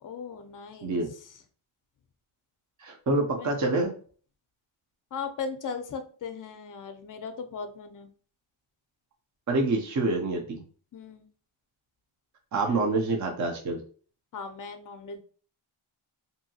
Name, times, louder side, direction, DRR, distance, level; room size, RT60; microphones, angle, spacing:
voice 1, 0.0-1.4 3.2-3.5 5.1-8.1 10.9-11.3 12.6-12.9 14.3-15.2, left 5 dB, 40° left, 8 dB, 0.5 m, -38 dB
voice 2, 2.8-3.9 9.5-10.6 12.5-13.8, right 2 dB, 35° right, 2 dB, 0.5 m, -27 dB
2.7 x 2.7 x 2.7 m, 0.43 s
wide cardioid pair, 115°, 50 cm